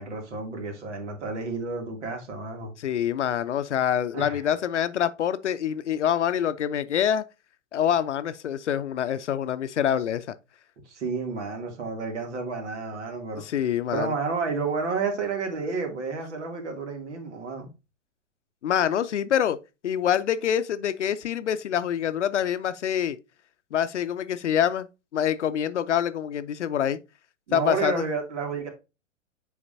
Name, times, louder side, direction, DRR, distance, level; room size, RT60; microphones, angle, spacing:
voice 1, 0.0-2.7 4.1-4.5 10.8-13.4 13.9-17.7 27.5-28.7, right 4 dB, 60° right, 2.7 m, -31 dB
voice 2, 2.8-7.2 7.7-10.3 13.4-14.1 18.6-19.6 19.8-23.2 23.7-24.9 25.1-27.0 27.5-28.0, left 9 dB, 65° left, 0.7 m, -26 dB
8.0 x 5.1 x 2.7 m
figure-of-eight pair, 110°, 38 cm